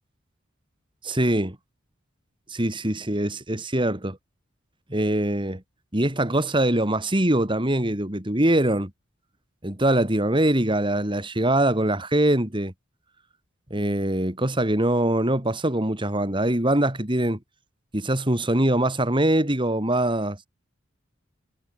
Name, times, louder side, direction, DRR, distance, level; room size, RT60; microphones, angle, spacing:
voice 1, 1.0-1.6 2.5-4.2 4.9-5.6 5.9-8.9 9.6-12.7 13.7-17.4 17.9-20.4, right 1 dB, 25° right, 3.1 m, -23 dB
head